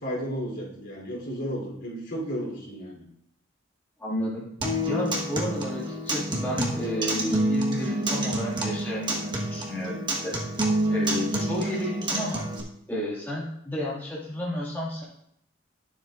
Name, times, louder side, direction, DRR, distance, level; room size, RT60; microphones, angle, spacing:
voice 1, 0.0-3.1, equal, 65° left, -2 dB, 3.6 m, -33 dB
voice 2, 4.0-4.5 4.9-10.3 10.9-12.5 12.9-15.0, equal, 10° left, -7 dB, 2.2 m, -32 dB
Acoustic guitar, 4.6-12.6, right 1 dB, 25° right, 1.4 m, -28 dB
12.0 x 7.2 x 2.5 m, 0.74 s
head